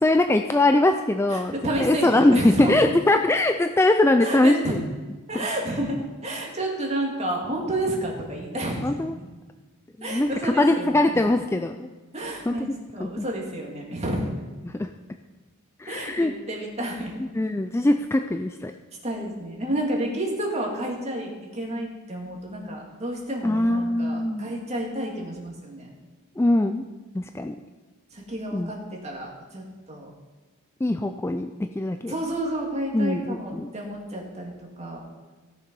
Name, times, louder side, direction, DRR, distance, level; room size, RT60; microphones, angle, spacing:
voice 1, 0.0-1.5 1.8-4.8 5.4-5.5 8.8-9.2 10.0-11.9 12.5-12.6 13.0-13.2 14.8-14.9 15.8-16.3 17.3-18.7 23.4-24.5 26.4-26.8 27.1-27.6 28.5-28.7 30.8-32.1 32.9-33.7, left 2 dB, 10° left, 7 dB, 0.3 m, -22 dB
voice 2, 1.3-2.9 4.2-4.7 5.3-9.3 10.0-11.2 12.1-14.3 15.9-17.2 19.0-26.0 28.1-30.1 32.1-35.0, right 1 dB, 30° right, -1 dB, 2.3 m, -30 dB
16.5 x 6.8 x 5.3 m, 1.3 s
head